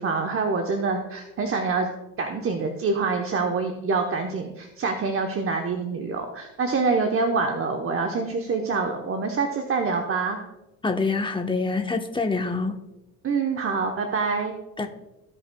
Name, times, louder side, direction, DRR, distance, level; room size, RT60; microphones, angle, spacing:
voice 1, 0.0-1.9 2.2-10.4 13.2-14.5, right 4 dB, 30° right, 3 dB, 1.0 m, -26 dB
voice 2, 10.8-12.7 14.8-14.9, left 3 dB, 10° left, 5 dB, 1.0 m, -25 dB
15.0 x 5.4 x 2.3 m, 0.96 s
supercardioid pair, 80°, 41 cm